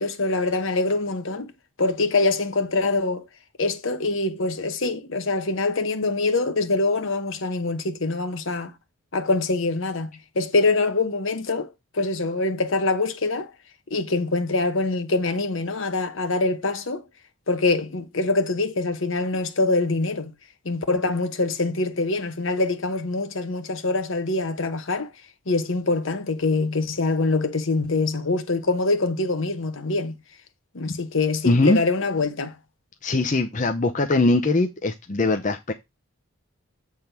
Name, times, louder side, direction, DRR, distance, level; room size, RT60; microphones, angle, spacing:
voice 1, 0.0-1.5 1.8-3.2 3.6-8.7 9.1-11.7 11.9-13.5 13.9-17.0 17.5-20.3 20.6-25.1 25.5-30.2 30.7-32.6, left 3 dB, 70° left, 1.1 m, -24 dB
voice 2, 31.4-31.8 33.0-35.7, left 2 dB, 35° left, 0.6 m, -21 dB
8.0 x 3.6 x 5.9 m
head